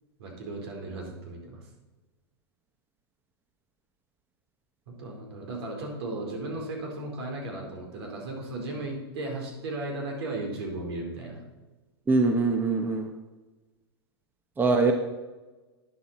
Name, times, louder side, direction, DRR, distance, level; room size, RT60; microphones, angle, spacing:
voice 1, 0.2-1.7 4.9-11.4, right 2 dB, 65° right, 1 dB, 4.2 m, -36 dB
voice 2, 12.1-13.1 14.6-14.9, right 3 dB, 15° right, 5 dB, 1.0 m, -23 dB
12.5 x 9.7 x 4.3 m, 1.2 s
hypercardioid pair, 125°, 14 cm